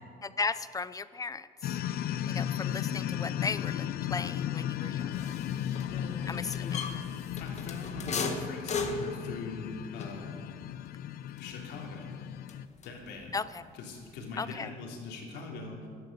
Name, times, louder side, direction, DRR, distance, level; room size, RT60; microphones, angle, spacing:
voice 1, 0.2-1.5 2.2-5.3 6.3-6.8 13.3-13.6 14.4-14.7, left 4 dB, 20° left, 15 dB, 0.6 m, -36 dB
sound 1, 1.6-12.7, left 10 dB, 65° left, 0.6 m, -35 dB
sound 2, 5.1-13.2 13.5-14.7, left 4 dB, 40° left, 1.7 m, -39 dB
voice 2, 5.9-6.2 6.6-6.7 7.4-10.3 11.4-12.1 12.8-13.3 13.7-15.8, left 3 dB, 85° left, 0 dB, 3.4 m, -42 dB
16.5 x 12.5 x 6.8 m, 2.1 s
cardioid pair, 110°, 17 cm